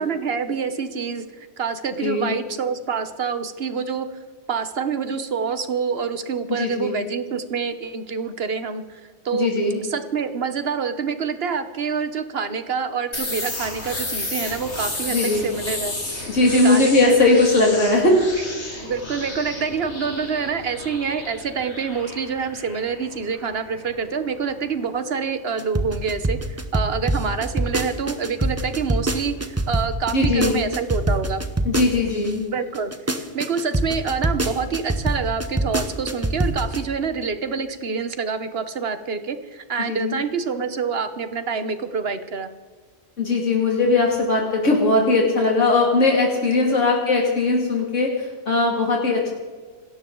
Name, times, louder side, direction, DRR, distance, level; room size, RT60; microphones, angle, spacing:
voice 1, 0.0-4.1 4.5-9.5 9.8-17.2 18.8-31.4 32.5-32.9 33.3-42.5, right 5 dB, 55° right, 10 dB, 1.3 m, -27 dB
voice 2, 2.0-2.3 6.5-6.9 9.3-9.8 15.1-15.4 16.3-18.2 30.1-30.6 31.6-32.4 39.8-40.2 43.2-49.3, left 2 dB, 80° left, -1 dB, 2.9 m, -19 dB
sound 1, 13.1-24.8, left 2 dB, 65° left, 3.6 m, -33 dB
sound 2, 25.6-32.3 32.7-36.8, right 1 dB, 15° right, 1.0 m, -23 dB
26.5 x 13.0 x 3.9 m, 1.5 s
omnidirectional pair, 1.2 m